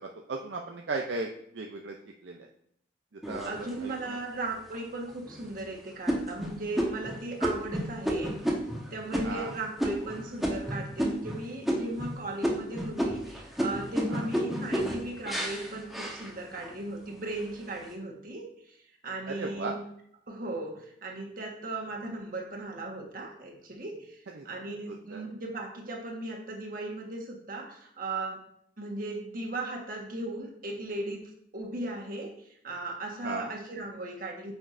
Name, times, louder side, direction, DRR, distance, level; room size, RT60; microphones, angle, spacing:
voice 1, 0.0-2.0 2.2-2.5 3.1-3.5 3.8-4.2 9.2-9.5 14.1-14.3 19.3-19.8 24.3-24.5 24.9-25.2 33.2-33.5, right 3 dB, 70° right, 2 dB, 0.6 m, -36 dB
sound 1, 3.2-4.1 4.7-4.8 5.3-5.6 6.1-11.4 11.6-12.1 12.4-16.7 17.2-17.8, equal, ahead, 1.2 m, -31 dB
voice 2, 3.4-19.8 20.3-28.4 28.8-34.5, right 2 dB, 50° right, 0 dB, 1.5 m, -37 dB
9.1 x 6.0 x 2.6 m, 0.69 s
head